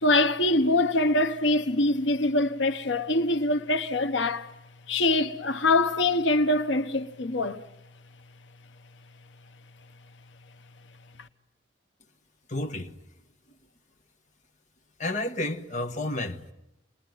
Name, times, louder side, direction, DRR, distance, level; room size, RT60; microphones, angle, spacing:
voice 1, 0.0-4.5 4.9-7.6, left 2 dB, 80° left, 1.0 m, -24 dB
voice 2, 12.5-12.9 15.0-16.5, left 1 dB, 40° left, 1.5 m, -31 dB
29.0 x 21.0 x 9.4 m
head